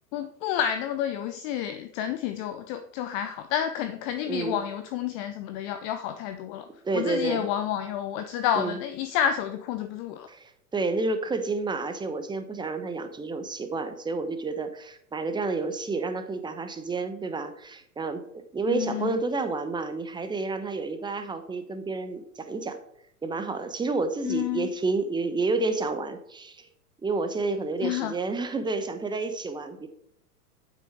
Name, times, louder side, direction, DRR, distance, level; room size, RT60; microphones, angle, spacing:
voice 1, 0.1-6.7 6.9-10.3 18.7-19.1 24.2-24.7 27.8-28.1, left 10 dB, 25° left, 10 dB, 0.5 m, -30 dB
voice 2, 4.3-4.6 6.8-7.5 8.5-8.8 10.3-22.8 23.2-26.7 27.0-29.9, right 3 dB, 10° right, 8 dB, 1.0 m, -30 dB
8.9 x 8.1 x 4.7 m, 0.71 s
figure-of-eight pair, 100°, 45 cm